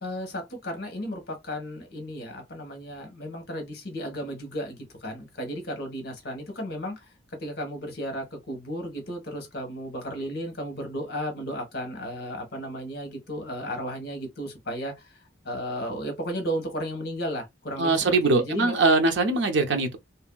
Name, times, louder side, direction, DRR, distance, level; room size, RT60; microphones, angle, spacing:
voice 1, 0.0-7.0 7.4-15.1 15.4-18.8, equal, 55° left, 1.1 m, -34 dB
voice 2, 17.8-20.0, right 3 dB, 70° right, 0.7 m, -22 dB
2.9 x 2.5 x 2.2 m
head